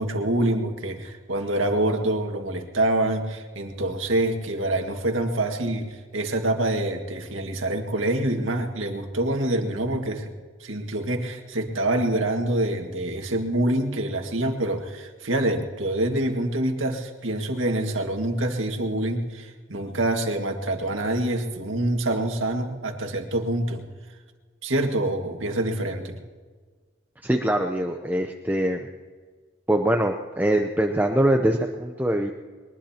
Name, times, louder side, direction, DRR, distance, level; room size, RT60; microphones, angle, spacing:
voice 1, 0.0-10.3 10.6-23.8 24.6-26.2, right 1 dB, 85° right, 4 dB, 1.9 m, -26 dB
voice 2, 27.2-28.8 29.7-32.3, right 1 dB, 10° right, 4 dB, 0.6 m, -23 dB
22.0 x 20.0 x 2.9 m, 1.5 s
head